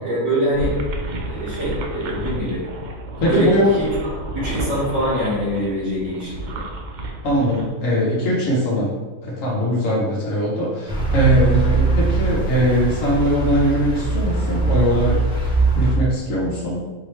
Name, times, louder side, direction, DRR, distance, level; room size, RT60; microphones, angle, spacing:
voice 1, 0.0-0.7 1.2-2.6 3.3-6.6, equal, 60° right, -10 dB, 1.9 m, -24 dB
sound 1, 0.5-7.7, right 2 dB, 90° right, 0.4 m, -31 dB
voice 2, 3.2-3.7 7.2-8.9 9.2-15.2 15.7-16.8, equal, 70° left, -4 dB, 1.2 m, -20 dB
sound 2, 10.9-16.0, right 3 dB, 5° right, 0.5 m, -21 dB
4.7 x 3.0 x 3.1 m, 1.3 s
omnidirectional pair, 1.4 m